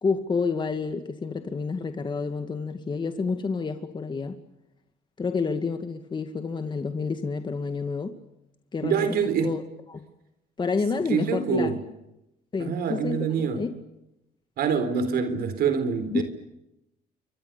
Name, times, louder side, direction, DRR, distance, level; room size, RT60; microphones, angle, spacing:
voice 1, 0.0-4.4 5.2-8.1 8.7-9.6 9.9-10.0 10.6-11.7 12.5-13.2 13.6-13.8 16.1-16.2, left 4 dB, 25° left, 2.2 m, -29 dB
voice 2, 8.8-9.5 11.1-11.8 12.6-13.6 14.6-16.2, right 6 dB, 65° right, 4.0 m, -25 dB
29.0 x 24.5 x 7.0 m
cardioid pair, 110°, 17 cm